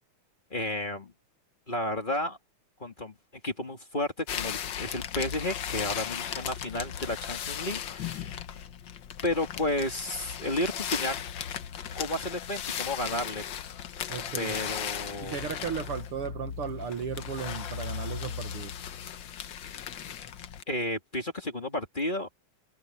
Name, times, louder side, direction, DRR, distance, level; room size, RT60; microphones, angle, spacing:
voice 1, 0.5-1.1 1.7-2.4 2.8-3.1 3.4-8.4 9.2-11.2 12.0-13.4 14.4-15.4 20.7-22.3, left 1 dB, 20° left, 1.9 m, -32 dB
sound 1, 4.3-20.6, left 9 dB, 80° left, 1.0 m, -36 dB
voice 2, 14.1-14.6 15.2-18.7, right 8 dB, 60° right, 1.6 m, -35 dB
omnidirectional pair, 3.5 m